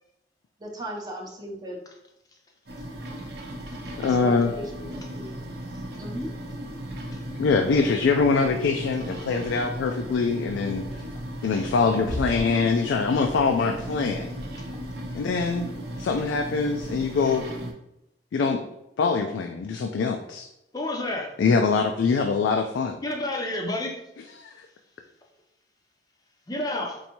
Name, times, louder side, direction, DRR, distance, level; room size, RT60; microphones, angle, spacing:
voice 1, 0.6-1.8 4.0-4.7 5.2-5.4 6.0-6.3 7.7-7.8, right 1 dB, 20° right, -1 dB, 0.6 m, -36 dB
sound 1, 2.7-17.7, equal, 65° right, 0.6 m, -35 dB
voice 2, 4.0-4.5 7.3-10.8 11.4-14.3 15.1-15.7 16.0-17.5 18.3-18.6 19.0-20.5 21.4-23.0 24.4-24.7, left 4 dB, 85° left, 5 dB, 0.3 m, -23 dB
voice 3, 20.7-21.3 23.0-24.0 26.5-27.0, left 1 dB, 20° left, 1 dB, 0.5 m, -29 dB
4.5 x 2.6 x 2.8 m, 0.86 s
head